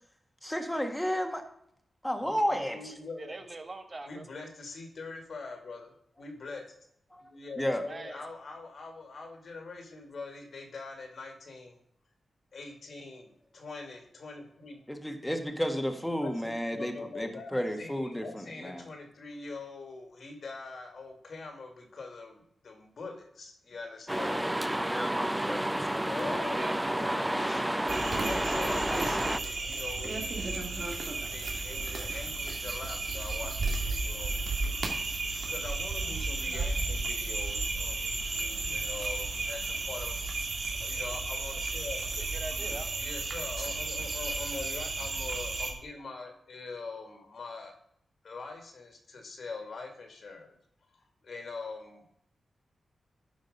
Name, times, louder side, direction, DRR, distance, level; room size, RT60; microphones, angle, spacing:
voice 1, 0.4-1.4 2.0-2.8 7.1-7.2 7.6-7.8 14.9-18.2 18.6-18.8 24.9-25.6, equal, 5° left, 5 dB, 1.6 m, -32 dB
voice 2, 2.2-3.4 4.0-6.7 7.2-11.8 12.5-14.8 16.2-24.5 25.4-27.8 28.1-40.5 40.8-42.0 43.0-47.7 48.2-50.6 50.9-52.1, left 3 dB, 70° left, 3 dB, 2.3 m, -43 dB
voice 3, 3.2-4.2 7.9-8.3 26.5-26.8 27.1-27.2 42.2-43.0, right 2 dB, 40° right, 6 dB, 1.4 m, -43 dB
sound 1, 24.1-29.4, right 1 dB, 10° right, 0.4 m, -30 dB
sound 2, 27.9-45.7, right 3 dB, 65° right, 2.0 m, -33 dB
11.5 x 5.2 x 5.4 m, 0.70 s
cardioid pair, 60°, 0 cm